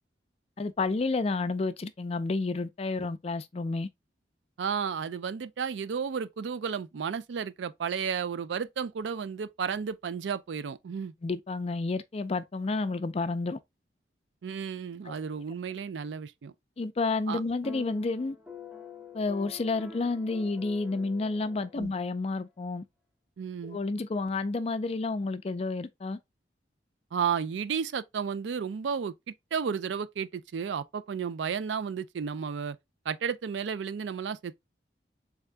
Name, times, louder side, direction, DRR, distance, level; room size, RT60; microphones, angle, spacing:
voice 1, 0.6-3.9 11.2-13.6 15.1-15.2 16.8-18.4 19.1-22.8 23.6-26.2, left 3 dB, 35° left, 0.4 m, -30 dB
voice 2, 4.6-11.1 14.4-16.5 17.3-17.4 21.8-21.9 23.4-23.8 27.1-29.1 29.5-32.8 33.1-34.6, right 6 dB, 80° right, 0.4 m, -33 dB
sound 1, 17.6-22.1, left 4 dB, 5° right, 0.7 m, -46 dB
3.7 x 3.5 x 3.3 m
head